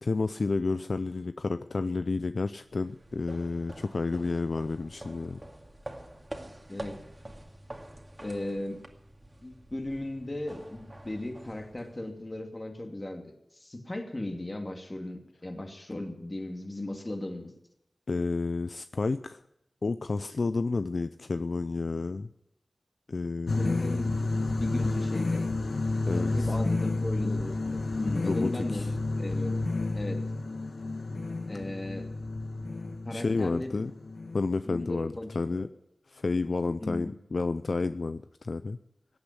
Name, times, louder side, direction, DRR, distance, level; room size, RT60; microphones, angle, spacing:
voice 1, 0.0-5.4 18.1-19.4 19.8-22.3 23.1-24.2 26.1-26.3 28.2-28.9 33.1-33.9 34.3-35.7 36.1-38.8, left 3 dB, 65° left, 11 dB, 0.5 m, -31 dB
sound 1, 2.7-12.3, right 1 dB, 25° right, 2.2 m, -46 dB
voice 2, 6.7-7.0 8.2-8.8 9.4-17.5 23.6-24.1 24.5-25.5 26.1-28.9 29.2-29.6 29.9-30.2 31.5-32.1 33.0-33.7 34.6-35.7 36.8-37.1, left 1 dB, 30° left, 4 dB, 2.5 m, -36 dB
sound 2, 23.5-34.4, left 2 dB, 80° left, 1.3 m, -30 dB
16.5 x 8.8 x 9.8 m, 0.83 s
wide cardioid pair, 65°, 0 cm